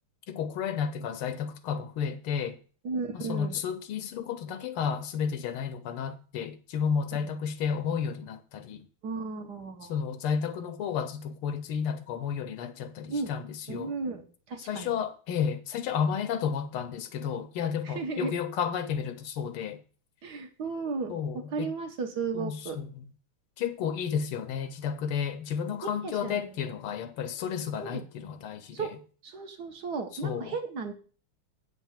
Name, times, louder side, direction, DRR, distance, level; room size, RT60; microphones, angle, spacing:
voice 1, 0.3-2.6 3.1-8.9 9.9-13.9 14.7-19.8 21.1-21.7 22.3-22.9 23.6-28.9 30.2-30.6, left 7 dB, 90° left, 1.8 m, -32 dB
voice 2, 2.8-3.6 9.0-9.9 13.1-13.3 13.7-14.9 17.8-18.3 20.2-21.2 21.5-22.8 25.8-26.4 27.8-28.0 28.7-28.9 29.2-30.9, right 4 dB, 55° right, 1.5 m, -34 dB
8.2 x 4.6 x 7.2 m
omnidirectional pair, 2.4 m